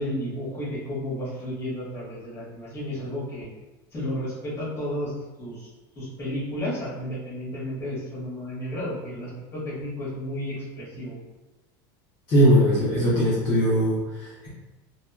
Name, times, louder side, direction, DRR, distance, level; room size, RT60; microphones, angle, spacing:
voice 1, 0.0-3.5 3.9-5.1 5.4-5.7 5.9-11.2, equal, 20° left, -8 dB, 1.2 m, -32 dB
voice 2, 12.3-14.5, equal, 45° left, -8 dB, 0.8 m, -20 dB
2.8 x 2.3 x 2.3 m, 1.1 s
supercardioid pair, 130°, 12 cm